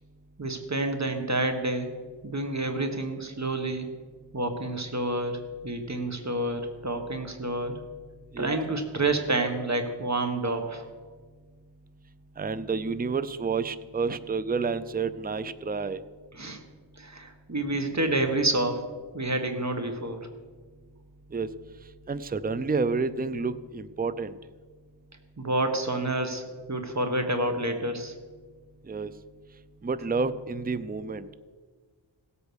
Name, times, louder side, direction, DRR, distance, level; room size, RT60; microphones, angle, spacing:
voice 1, 0.4-1.9 2.2-3.9 4.3-7.7 8.4-10.8 16.3-16.6 17.0-18.8 19.1-20.2 25.4-28.1, right 2 dB, 35° right, 6 dB, 1.5 m, -29 dB
voice 2, 12.4-16.0 21.3-21.5 22.1-24.4 28.9-29.1 29.8-31.3, right 4 dB, 20° right, 14 dB, 0.5 m, -29 dB
17.0 x 8.4 x 6.4 m, 1.5 s
wide cardioid pair, 70°, 47 cm